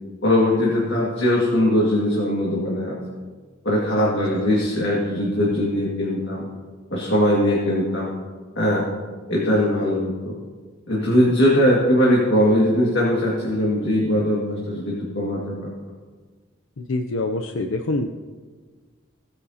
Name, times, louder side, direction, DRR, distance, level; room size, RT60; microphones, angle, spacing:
voice 1, 0.2-3.0 3.7-6.5 6.9-8.1 8.6-8.9 9.3-10.3 10.9-15.7, equal, 60° left, -5 dB, 2.0 m, -20 dB
voice 2, 4.0-4.4 16.8-18.1, left 2 dB, 75° left, 5 dB, 0.5 m, -26 dB
16.0 x 9.7 x 2.8 m, 1.4 s
head